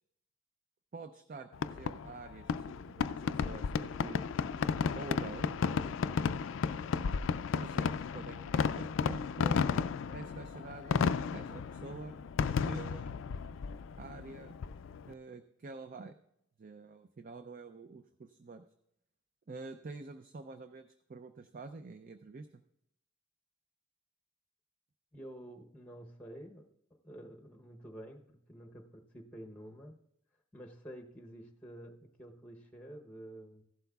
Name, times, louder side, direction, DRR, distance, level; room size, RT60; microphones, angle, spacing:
voice 1, 0.9-4.2 4.9-5.5 7.6-9.8 10.1-11.0 11.3-12.2 12.7-13.1 14.0-14.5 15.1-16.2 16.6-18.6 19.5-22.6, right 3 dB, 45° right, 9 dB, 0.4 m, -47 dB
Fireworks, 1.5-15.1, left 6 dB, 75° left, 0.3 m, -33 dB
voice 2, 25.1-26.7 27.0-29.9 30.5-33.6, right 1 dB, 5° left, 2 dB, 0.8 m, -49 dB
15.5 x 12.0 x 2.3 m, 0.79 s
head